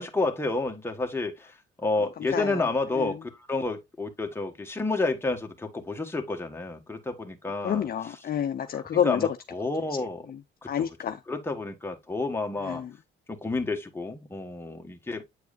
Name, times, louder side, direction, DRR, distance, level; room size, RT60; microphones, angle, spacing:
voice 1, 0.0-7.9 8.7-10.3 10.8-10.9 11.3-12.8 13.3-15.2, left 3 dB, 10° left, 1.3 m, -30 dB
voice 2, 7.6-9.3 10.7-11.2 12.7-12.9, left 9 dB, 50° left, 0.6 m, -28 dB
8.4 x 4.6 x 2.5 m
cardioid pair, 90°, 20 cm